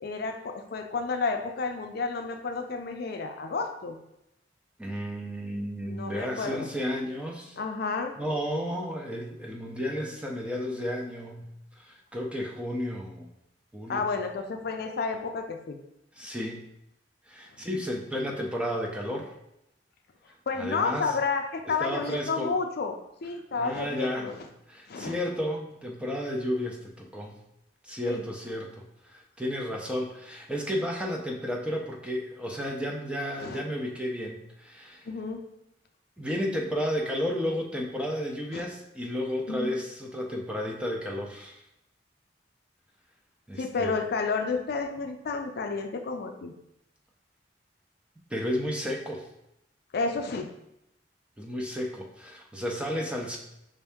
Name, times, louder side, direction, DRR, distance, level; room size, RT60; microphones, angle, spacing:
voice 1, 0.0-4.0 5.9-6.7 7.6-8.1 13.9-15.8 20.5-23.0 23.2-24.5 24.9-25.2 28.1-28.2 33.4-33.6 35.1-35.4 38.5-38.6 39.5-39.7 43.6-46.5 49.9-50.5, left 4 dB, 60° left, 5 dB, 0.4 m, -31 dB
voice 2, 4.8-7.6 8.2-11.5 11.8-13.3 13.7-14.0 16.2-16.6 17.3-19.3 20.6-21.1 21.8-22.5 23.5-24.3 24.7-27.4 27.8-35.0 36.2-41.6 43.5-43.9 48.3-49.3 51.4-53.4, equal, 5° right, 0 dB, 0.6 m, -32 dB
5.1 x 2.7 x 3.5 m, 0.82 s
head